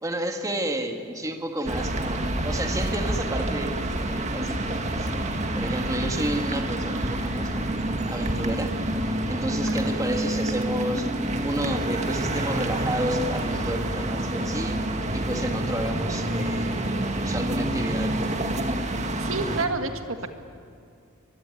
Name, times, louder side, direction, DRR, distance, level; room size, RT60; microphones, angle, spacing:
voice 1, 0.0-5.1 5.5-7.7 8.1-8.8 9.3-11.1 11.4-14.8 15.1-16.8 17.2-18.3, right 1 dB, 15° right, 4 dB, 1.7 m, -31 dB
sound 1, 1.7-19.7, right 1 dB, 35° right, 1.9 m, -27 dB
voice 2, 9.6-10.0 19.2-20.3, right 3 dB, 70° right, 7 dB, 1.8 m, -30 dB
24.0 x 22.0 x 9.9 m, 2.4 s
head